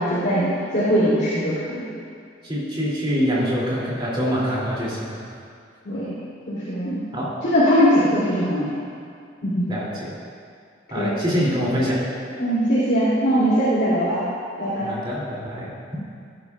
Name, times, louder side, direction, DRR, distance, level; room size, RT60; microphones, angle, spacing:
voice 1, 0.0-1.9 5.8-6.2 6.5-7.0 7.4-8.8 9.4-9.7 10.9-11.1 12.4-14.2 14.6-14.9, equal, 60° left, -12 dB, 2.9 m, -21 dB
voice 2, 2.4-5.3 7.1-7.3 9.7-9.9 10.9-12.0 14.8-15.7, equal, 25° right, -6 dB, 2.7 m, -24 dB
16.0 x 10.5 x 2.4 m, 2.3 s
head